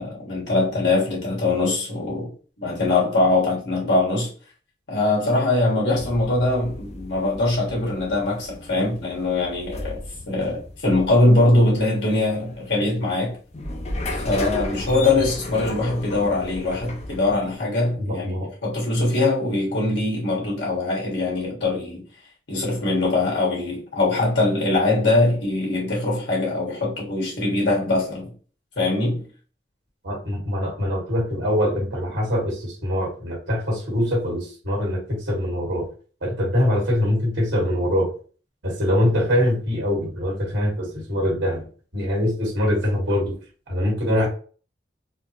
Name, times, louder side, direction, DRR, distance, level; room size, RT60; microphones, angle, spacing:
voice 1, 0.0-2.3 2.6-4.3 4.9-10.0 10.3-13.4 14.2-22.1 22.5-28.3 28.8-29.3, left 2 dB, 75° left, 1.7 m, -22 dB
sound 1, 5.9-17.6, left 1 dB, 35° left, 0.5 m, -35 dB
voice 2, 18.0-18.5 30.0-35.9 36.2-38.1 38.6-41.6 41.9-43.3 43.7-44.3, left 1 dB, 75° right, 1.6 m, -23 dB
4.1 x 2.0 x 2.9 m
head